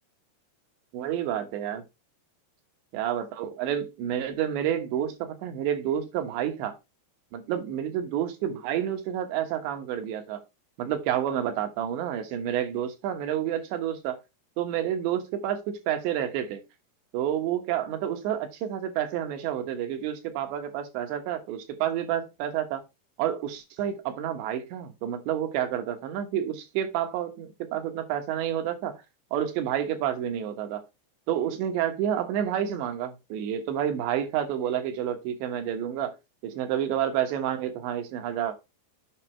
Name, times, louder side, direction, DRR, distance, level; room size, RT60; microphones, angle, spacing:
voice 1, 0.9-1.8 2.9-6.7 7.3-10.4 10.8-14.2 14.6-16.6 17.1-22.8 23.2-29.0 29.3-30.8 31.3-36.2 36.4-38.6, right 10 dB, 75° right, 3.5 m, -29 dB
8.3 x 5.8 x 4.4 m
omnidirectional pair, 5.1 m